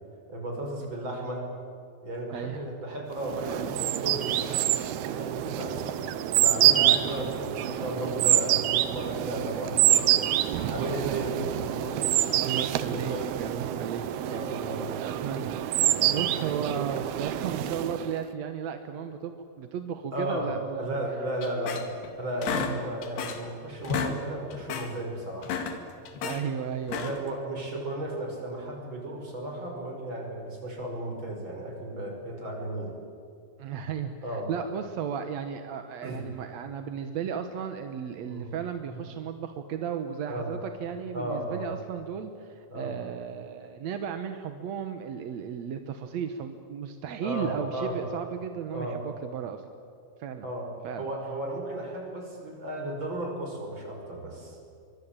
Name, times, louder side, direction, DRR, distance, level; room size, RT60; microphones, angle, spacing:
voice 1, 0.3-1.4 2.0-4.4 5.0-5.8 6.4-10.4 10.7-12.0 12.7-13.7 14.2-14.9 16.0-16.5 20.1-20.5 20.8-21.9 22.2-25.6 27.0-33.0 34.2-34.5 36.0-36.3 38.2-38.5 38.9-39.0 40.3-40.5 41.1-41.7 42.7-42.9 47.2-48.0 48.7-49.0 50.4-50.7 51.0-54.6, right 1 dB, 30° right, 1 dB, 6.4 m, -35 dB
voice 2, 2.3-2.6 6.8-7.1 12.2-20.9 22.5-22.8 26.2-27.1 33.6-49.6 50.2-50.5 50.8-51.1, right 8 dB, 65° right, 7 dB, 1.9 m, -35 dB
sound 1, 3.2-18.2, right 13 dB, 80° right, 3.0 m, -26 dB
sound 2, 21.4-22.1 22.4-23.5 23.8-24.2 24.5-24.9 25.3-26.4 26.8-27.3, left 6 dB, 90° left, 4.2 m, -32 dB
24.5 x 23.0 x 8.9 m, 2.5 s
omnidirectional pair, 4.5 m